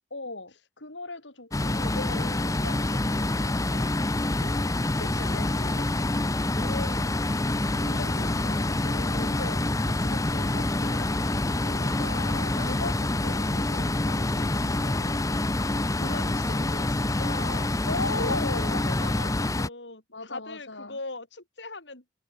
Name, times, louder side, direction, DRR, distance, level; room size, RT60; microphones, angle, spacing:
voice 1, 0.1-3.9 4.3-4.7 5.0-5.8 7.8-10.6 11.7-15.3 17.9-18.9 20.1-21.0, left 2 dB, 90° left, 7.2 m, -39 dB
sound 1, 1.5-19.7, left 2 dB, 20° left, 0.7 m, -27 dB
voice 2, 5.6-6.0 6.5-7.1 7.9-9.4 10.5-12.8 16.0-17.7 18.2-22.0, left 2 dB, 70° left, 4.6 m, -41 dB
head